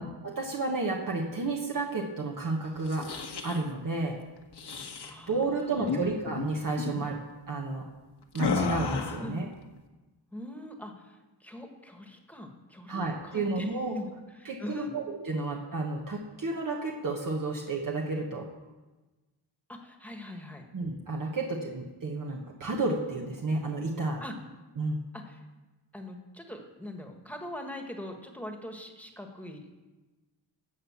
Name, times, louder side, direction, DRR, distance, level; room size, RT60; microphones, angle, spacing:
voice 1, 0.0-3.1 3.4-4.2 5.3-7.2 7.5-7.9 8.3-9.5 12.9-14.0 14.4-18.5 20.7-24.2 24.8-25.0, right 3 dB, 50° right, -1 dB, 1.3 m, -31 dB
sound 1, 2.8-3.6 4.5-5.1 5.8-6.0 6.3-6.5 6.8-7.0 8.4-9.3, left 4 dB, 70° left, 1.4 m, -32 dB
voice 2, 5.0-6.1 9.2-9.4 10.3-14.1 14.4-14.9 19.7-20.6 21.4-21.6 24.2-24.3 25.1-25.4 25.9-29.8, left 1 dB, 5° left, 3 dB, 1.5 m, -42 dB
16.5 x 5.7 x 7.3 m, 1.2 s
wide cardioid pair, 135°, 41 cm